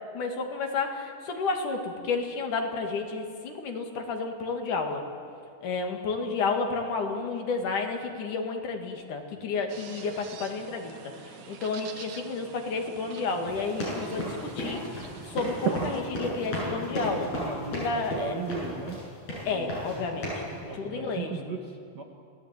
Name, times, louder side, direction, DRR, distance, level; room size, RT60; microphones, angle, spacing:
voice 1, 0.1-5.0 5.6-11.0 11.5-14.8 15.3-17.3 17.7-18.3 19.5-20.3 20.7-21.3, left 4 dB, 80° left, 4 dB, 3.8 m, -31 dB
sound 1, 9.7-16.0, right 8 dB, 85° right, 3.2 m, -39 dB
sound 2, 13.5-19.0 19.3-20.0 20.2-20.5, left 1 dB, 55° left, 9.0 m, -34 dB
voice 2, 17.4-19.0 19.4-22.0, right 4 dB, 40° right, 3 dB, 1.9 m, -38 dB
28.0 x 18.5 x 9.1 m, 2.3 s
omnidirectional pair, 3.5 m